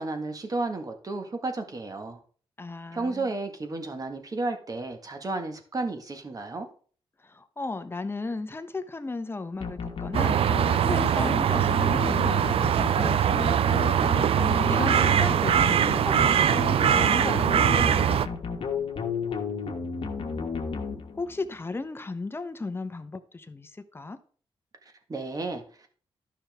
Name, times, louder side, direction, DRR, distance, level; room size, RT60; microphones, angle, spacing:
voice 1, 0.0-2.2 2.9-6.7 24.8-25.9, right 3 dB, 35° right, 6 dB, 1.6 m, -33 dB
voice 2, 2.6-3.3 7.2-13.7 14.4-18.0 21.2-24.2, left 3 dB, 20° left, 10 dB, 0.8 m, -36 dB
sound 1, 9.6-21.5, left 5 dB, 60° left, 1.4 m, -33 dB
sound 2, 10.1-18.3, right 9 dB, 65° right, 0.4 m, -22 dB
12.0 x 5.6 x 3.5 m, 0.43 s
cardioid pair, 95°, 10 cm